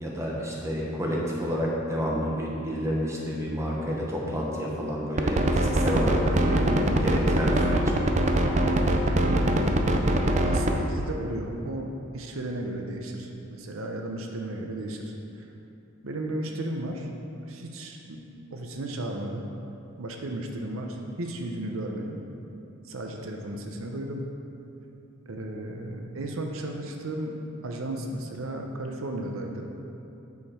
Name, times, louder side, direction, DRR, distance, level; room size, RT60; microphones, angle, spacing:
voice 1, 0.0-7.8, equal, 15° right, -3 dB, 1.0 m, -29 dB
sound 1, 5.2-10.7, right 1 dB, 35° right, 0.5 m, -22 dB
voice 2, 9.2-10.1 10.5-15.5 16.0-17.1 17.5-19.5 20.0-22.2 22.9-24.3 25.3-29.7, right 1 dB, 80° right, 2 dB, 0.7 m, -34 dB
8.2 x 6.5 x 4.3 m, 2.8 s
head